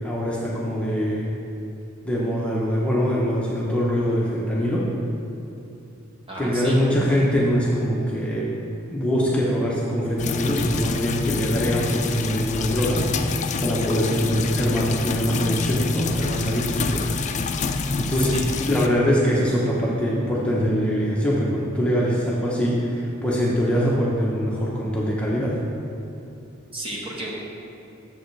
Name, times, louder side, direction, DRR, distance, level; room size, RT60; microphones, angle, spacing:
voice 1, 0.0-1.3 2.0-4.8 6.4-8.5 8.9-17.1 18.0-18.3 18.7-25.5, equal, 5° left, -6 dB, 0.8 m, -23 dB
voice 2, 6.3-6.8 18.2-18.6 26.7-27.4, right 1 dB, 25° right, -4 dB, 1.1 m, -33 dB
sound 1, 10.2-18.9, left 4 dB, 35° left, 0.3 m, -27 dB
7.0 x 7.0 x 3.2 m, 2.9 s
head